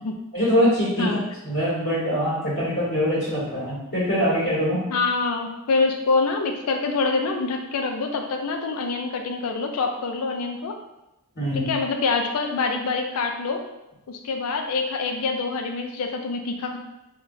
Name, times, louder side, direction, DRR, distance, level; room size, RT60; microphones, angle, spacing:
voice 1, 0.3-4.8 11.3-11.7, equal, 60° left, -10 dB, 1.4 m, -23 dB
voice 2, 4.9-10.8 11.5-13.7 14.1-16.8, left 4 dB, 85° left, 4 dB, 0.4 m, -25 dB
3.7 x 2.2 x 2.6 m, 0.93 s
head